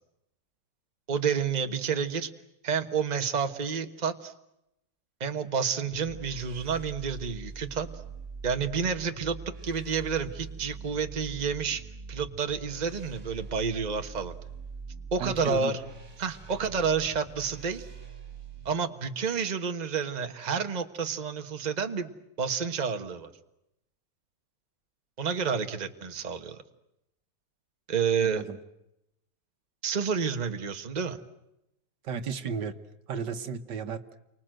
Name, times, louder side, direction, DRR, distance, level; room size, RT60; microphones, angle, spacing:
voice 1, 1.1-2.3 2.6-4.3 5.2-7.9 8.4-9.4 9.6-11.8 12.1-14.3 15.1-15.8 16.2-17.9 18.6-22.1 22.4-23.3 25.2-26.6 27.9-28.4 29.8-31.2, right 6 dB, 25° right, 7 dB, 1.4 m, -29 dB
sound 1, 5.9-18.7, right 4 dB, 40° right, 2.9 m, -43 dB
voice 2, 15.2-15.7 28.2-28.6 32.0-32.8 33.1-34.0, right 6 dB, 70° right, 9 dB, 1.8 m, -33 dB
29.5 x 25.0 x 7.8 m, 0.86 s
omnidirectional pair, 1.9 m